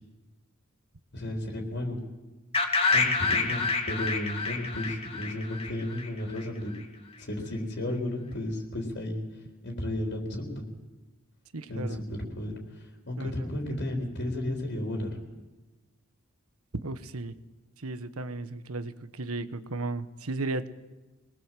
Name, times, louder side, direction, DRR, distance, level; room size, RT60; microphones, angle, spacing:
voice 1, 1.1-2.0 2.9-6.7 7.2-10.7 11.7-15.1, left 1 dB, 50° left, 1 dB, 3.9 m, -33 dB
sound 1, 2.5-6.4, left 4 dB, 25° left, 2.5 m, -28 dB
voice 2, 11.5-12.0 13.2-13.3 16.8-17.3 17.8-20.7, right 2 dB, 85° right, 12 dB, 1.3 m, -35 dB
25.5 x 21.0 x 7.6 m, 1.1 s
head